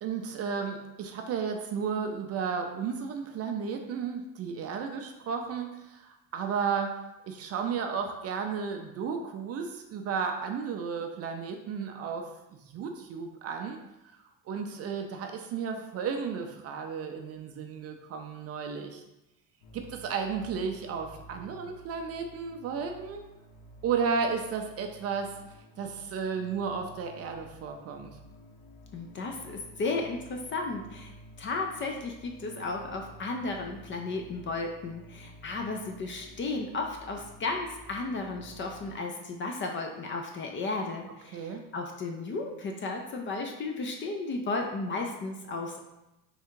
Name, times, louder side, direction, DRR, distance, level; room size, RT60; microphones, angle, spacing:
voice 1, 0.0-7.0 7.2-12.3 12.6-13.8 14.5-19.0 19.7-23.2 23.8-25.3 25.8-28.2 41.3-41.6, right 6 dB, 35° right, 4 dB, 0.4 m, -33 dB
sound 1, 19.6-38.9, equal, 65° left, 0.9 m, -52 dB
voice 2, 28.9-45.8, left 3 dB, 30° left, 3 dB, 0.4 m, -34 dB
3.5 x 2.3 x 4.5 m, 0.94 s
supercardioid pair, 115°, 42 cm